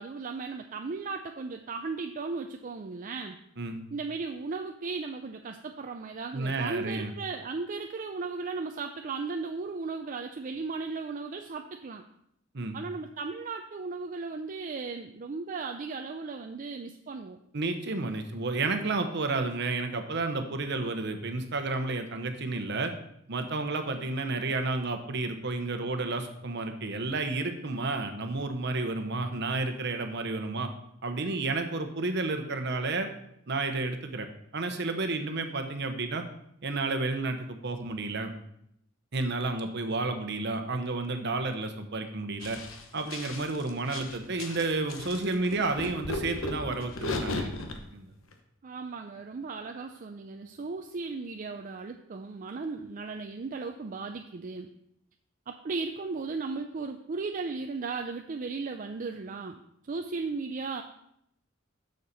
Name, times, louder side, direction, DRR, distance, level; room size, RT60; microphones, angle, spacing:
voice 1, 0.0-3.4 3.9-12.0 12.7-17.4 48.6-54.7 55.5-60.8, right 4 dB, 40° right, 5 dB, 0.5 m, -36 dB
voice 2, 6.3-7.1 12.5-12.8 17.5-22.9 23.3-30.7 31.0-33.1 33.5-34.3 34.5-36.2 36.6-38.3 39.1-42.6 42.9-47.5 47.9-48.1, right 3 dB, 60° right, 7 dB, 1.0 m, -31 dB
sound 1, 42.4-47.8 48.3-48.4, left 2 dB, 90° left, 1.1 m, -36 dB
7.0 x 6.6 x 5.3 m, 0.75 s
head